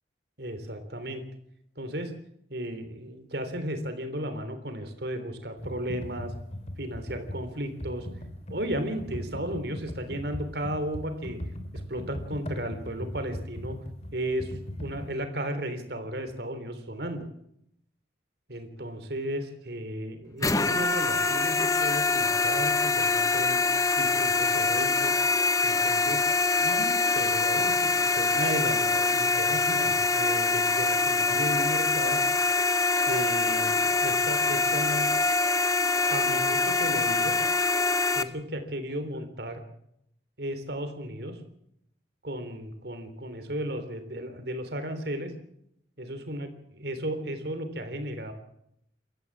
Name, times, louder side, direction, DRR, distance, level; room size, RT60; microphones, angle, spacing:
voice 1, 0.4-1.2 1.8-2.1 2.5-6.3 6.8-8.1 8.5-11.4 11.7-13.8 14.1-17.3 18.5-23.6 24.0-25.2 25.6-26.2 26.6-32.2 33.1-35.0 36.1-37.3 38.1-39.6 40.4-41.4 42.2-45.3 46.0-46.5 46.8-48.3, right 1 dB, 60° right, 8 dB, 3.4 m, -34 dB
Computer keyboard, 5.6-15.1, equal, 35° left, 2.8 m, -39 dB
sound 1, 20.4-38.2, left 3 dB, 20° left, 0.8 m, -24 dB
28.5 x 14.0 x 7.4 m, 0.75 s
head